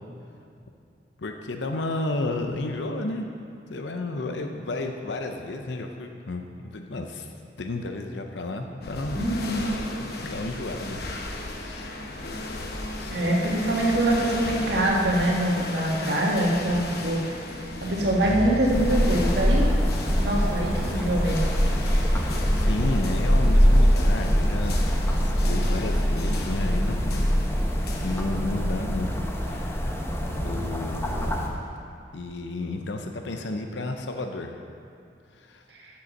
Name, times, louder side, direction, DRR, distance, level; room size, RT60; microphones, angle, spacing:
voice 1, 1.2-3.3 3.7-7.3 7.6-9.4 10.0-11.0 11.4-11.9 13.1-13.6 22.5-24.8 25.2-27.7 28.0-29.1 29.4-30.0 30.3-31.5 32.1-34.5 35.3-35.6, left 2 dB, 90° left, 4 dB, 0.6 m, -32 dB
sound 1, 8.8-28.2, left 2 dB, 60° left, 0.9 m, -36 dB
voice 2, 9.2-9.7 13.1-17.4 17.8-19.6 20.1-21.5 35.7-35.9, right 1 dB, 80° right, -3 dB, 1.6 m, -24 dB
sound 2, 17.6-19.6, left 1 dB, 40° left, 1.0 m, -36 dB
sound 3, 18.7-31.5, equal, 15° left, 0.8 m, -23 dB
7.9 x 6.9 x 6.4 m, 2.5 s
head